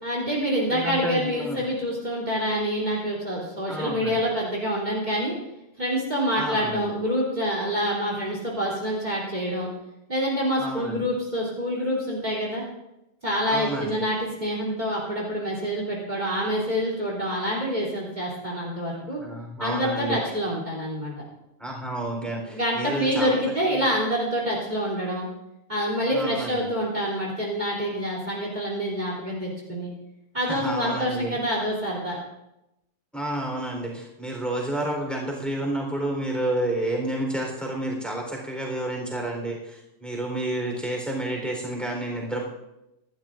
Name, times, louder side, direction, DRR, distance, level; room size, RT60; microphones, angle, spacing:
voice 1, 0.0-5.3 5.8-9.7 10.1-12.6 13.2-19.2 19.6-21.1 22.5-25.3 25.7-29.9 30.3-32.2, equal, 35° right, -4 dB, 3.3 m, -27 dB
voice 2, 0.7-1.7 3.7-4.2 6.4-6.9 10.6-11.1 13.5-14.0 19.2-20.2 21.6-23.4 26.1-26.7 30.5-31.4 33.1-42.5, right 1 dB, ahead, -1 dB, 3.9 m, -30 dB
25.5 x 12.0 x 2.6 m, 0.89 s
omnidirectional pair, 1.4 m